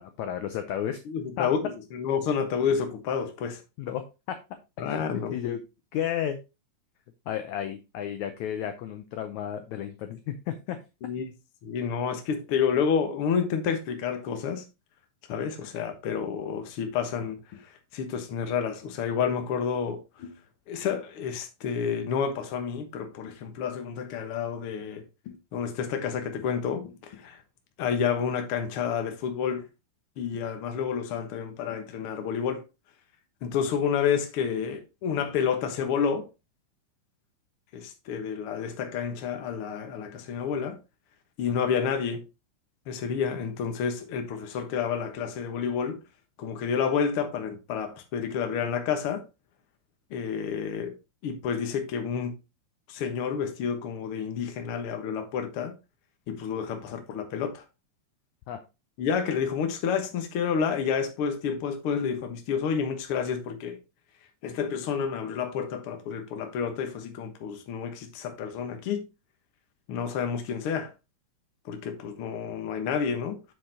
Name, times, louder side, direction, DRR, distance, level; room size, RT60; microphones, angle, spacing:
voice 1, 0.0-1.0 1.4-1.5 3.8-4.0 4.3-4.4 4.8-5.0 5.3-5.6 5.9-6.4 7.3-10.8 15.6-15.7 41.5-41.6 58.5-58.6, left 10 dB, 80° left, 1.7 m, -32 dB
voice 2, 1.1-3.6 4.8-5.4 11.0-11.3 11.6-14.6 15.3-17.6 17.9-20.3 20.7-27.4 27.8-29.6 30.2-32.6 33.4-36.3 37.7-40.8 41.4-42.2 42.9-46.0 46.4-49.2 50.1-50.9 51.2-52.3 52.9-55.7 56.3-57.6 59.0-63.8 64.4-69.1 69.9-70.9 71.6-73.4, left 7 dB, 65° left, 1.4 m, -29 dB
7.7 x 6.7 x 2.8 m
omnidirectional pair, 4.2 m